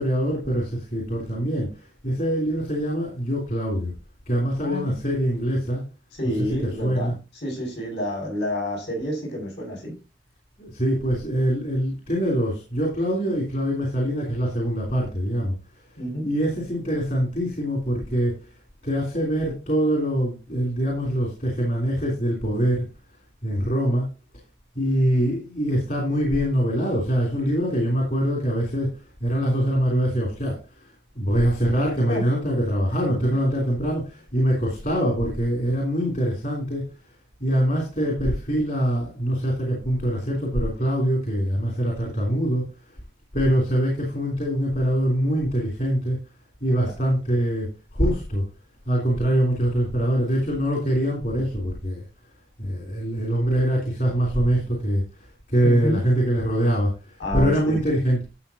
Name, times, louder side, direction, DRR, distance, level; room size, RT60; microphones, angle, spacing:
voice 1, 0.0-3.9 4.3-5.8 6.8-7.1 10.6-15.5 16.2-18.5 18.8-22.9 23.4-24.1 24.7-28.9 29.2-36.8 37.4-42.7 43.3-46.2 46.6-48.4 48.8-52.0 52.6-58.2, equal, 50° left, -1 dB, 3.4 m, -24 dB
voice 2, 4.5-5.0 6.2-10.0 16.0-16.3 32.1-32.2 46.7-46.9 55.6-56.0 57.2-57.8, left 1 dB, 70° left, 1 dB, 6.8 m, -29 dB
12.5 x 7.9 x 2.9 m, 0.28 s
head